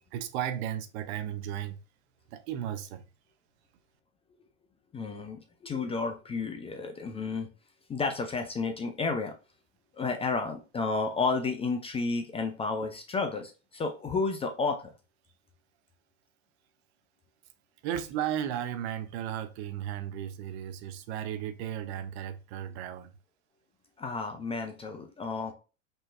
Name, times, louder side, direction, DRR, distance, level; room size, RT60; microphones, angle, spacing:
voice 1, 0.1-1.8 2.3-3.0 12.8-12.9 17.8-23.1, right 10 dB, 55° right, 0.8 m, -35 dB
voice 2, 4.9-7.5 7.9-9.3 9.9-14.8 24.0-25.5, left 4 dB, 15° left, 0.5 m, -31 dB
5.4 x 2.9 x 2.5 m
hypercardioid pair, 105°, 40 cm